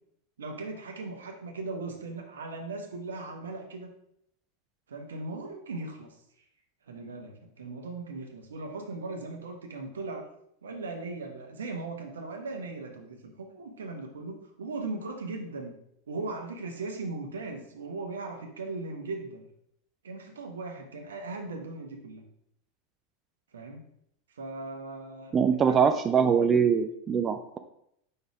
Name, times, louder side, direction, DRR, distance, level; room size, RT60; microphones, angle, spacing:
voice 1, 0.4-3.9 4.9-6.2 6.9-10.3 10.6-15.7 16.1-19.4 20.0-22.2 23.5-23.8 24.3-26.3, right 3 dB, 75° right, 3 dB, 1.1 m, -38 dB
voice 2, 25.3-27.6, right 6 dB, 30° right, 7 dB, 0.4 m, -23 dB
5.4 x 4.0 x 4.7 m, 0.74 s
figure-of-eight pair, 90°, 0 cm